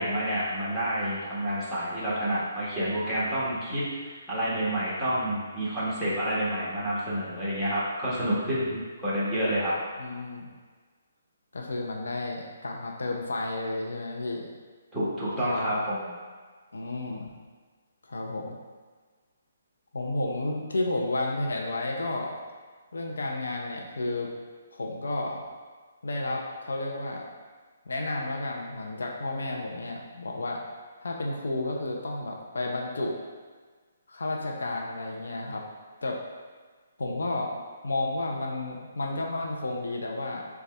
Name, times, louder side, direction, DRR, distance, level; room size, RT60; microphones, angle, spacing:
voice 1, 0.0-9.8 14.9-16.0, equal, ahead, -11 dB, 1.2 m, -29 dB
voice 2, 10.0-10.5 11.5-14.5 15.4-15.9 16.7-17.3 18.0-18.6 19.9-22.3 22.9-24.3 24.7-25.4 26.0-27.3 27.9-30.6 31.0-33.2 34.1-35.6 36.0-36.2 37.0-40.4, left 2 dB, 80° left, 0 dB, 0.5 m, -32 dB
4.0 x 2.3 x 3.3 m, 1.5 s
hypercardioid pair, 145°, 0 cm